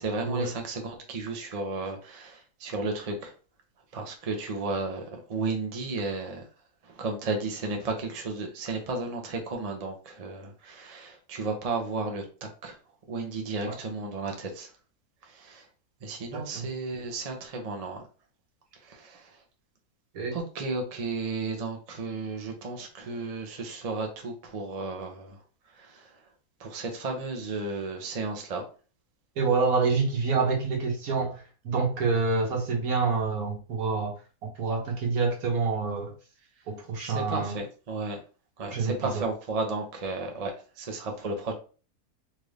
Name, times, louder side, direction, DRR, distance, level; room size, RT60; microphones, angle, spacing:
voice 1, 0.0-3.3 3.9-6.5 6.8-12.8 13.1-14.7 15.2-15.7 16.0-18.0 18.7-19.4 20.3-25.4 25.7-26.2 26.6-28.6 37.0-38.2 38.6-41.5, right 3 dB, 35° right, 3 dB, 0.6 m, -33 dB
voice 2, 29.4-34.1 34.6-36.1 36.7-37.6 38.7-39.2, right 4 dB, 65° right, 1 dB, 1.5 m, -27 dB
4.1 x 2.5 x 3.3 m, 0.36 s
omnidirectional pair, 1.6 m